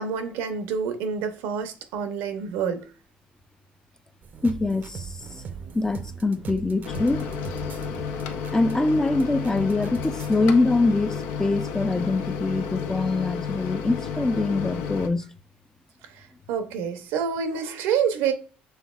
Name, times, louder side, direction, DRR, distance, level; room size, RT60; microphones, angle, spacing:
voice 1, 0.0-2.8 16.2-18.3, right 7 dB, 85° right, 0.7 m, -27 dB
sound 1, 4.2-10.4, right 6 dB, 45° right, 0.5 m, -40 dB
voice 2, 4.4-5.2 5.7-7.3 8.5-15.3, left 3 dB, 15° left, 0.4 m, -24 dB
Microwave oven, 6.8-15.1, left 6 dB, 85° left, 0.6 m, -32 dB
5.7 x 3.4 x 2.3 m
cardioid pair, 95°, 4 cm